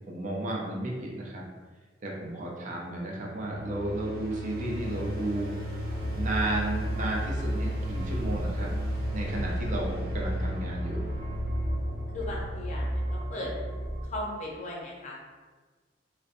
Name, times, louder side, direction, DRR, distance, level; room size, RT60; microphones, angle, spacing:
voice 1, 0.0-1.4 2.0-5.5 5.8-5.9 6.1-8.7 9.1-11.0, right 2 dB, 45° right, -2 dB, 0.5 m, -33 dB
sound 1, 2.9-13.9, left 1 dB, 60° right, 0.8 m, -37 dB
sound 2, 5.9-14.1, right 1 dB, 15° right, 0.8 m, -33 dB
voice 2, 12.1-13.5 14.0-15.2, left 1 dB, 45° left, -3 dB, 0.6 m, -37 dB
2.7 x 2.1 x 2.4 m, 1.4 s
head